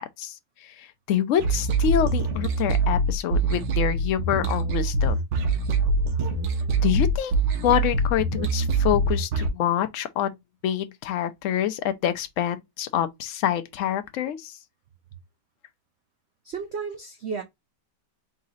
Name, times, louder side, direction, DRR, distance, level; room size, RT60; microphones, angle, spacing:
voice 1, 0.8-5.2 6.8-7.3 7.6-10.3 10.6-14.6, left 11 dB, 65° left, 0.8 m, -26 dB
sound 1, 1.4-9.5, right 2 dB, 85° right, 1.5 m, -24 dB
voice 2, 16.4-17.4, right 5 dB, 65° right, 0.6 m, -33 dB
4.0 x 2.8 x 3.8 m
omnidirectional pair, 1.8 m